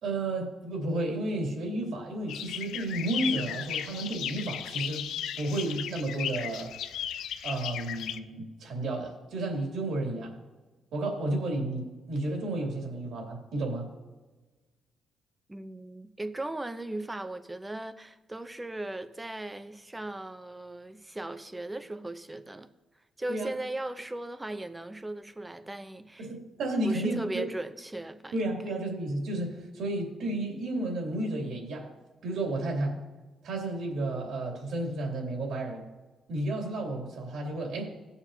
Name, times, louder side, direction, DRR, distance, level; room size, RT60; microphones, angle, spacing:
voice 1, 0.0-5.1 5.4-6.7 7.4-10.4 10.9-13.9 23.3-23.5 26.2-27.5 28.3-31.9 32.2-33.0 33.4-35.9 36.3-37.9, right 2 dB, 70° right, 2.7 m, -32 dB
sound 1, 2.3-8.2, left 9 dB, 80° left, 0.4 m, -35 dB
voice 2, 15.5-22.7 23.2-26.3 26.8-28.3, right 1 dB, 10° right, 0.6 m, -37 dB
17.0 x 7.1 x 2.8 m
cardioid pair, 120°, 0 cm